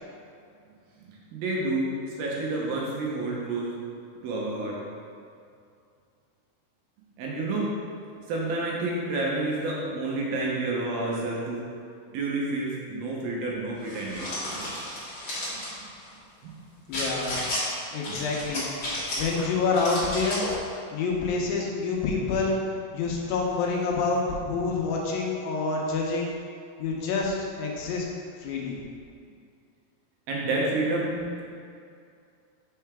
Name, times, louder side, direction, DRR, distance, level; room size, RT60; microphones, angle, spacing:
voice 1, 1.1-1.9 2.2-3.8 4.2-4.8 7.2-7.7 8.3-11.6 12.1-14.7 16.4-16.5 18.1-18.2 30.3-31.2, right 2 dB, 80° right, -4 dB, 2.7 m, -29 dB
sound 1, 13.8-15.7 16.9-17.6 18.0-19.4 19.7-20.6, left 1 dB, 55° left, 1.1 m, -33 dB
voice 2, 16.9-17.4 17.9-18.7 19.1-20.5 20.9-22.6 22.9-26.3 26.8-28.1 28.4-28.8, left 4 dB, 80° left, -2 dB, 2.4 m, -27 dB
5.6 x 5.6 x 3.4 m, 2.4 s
omnidirectional pair, 4.3 m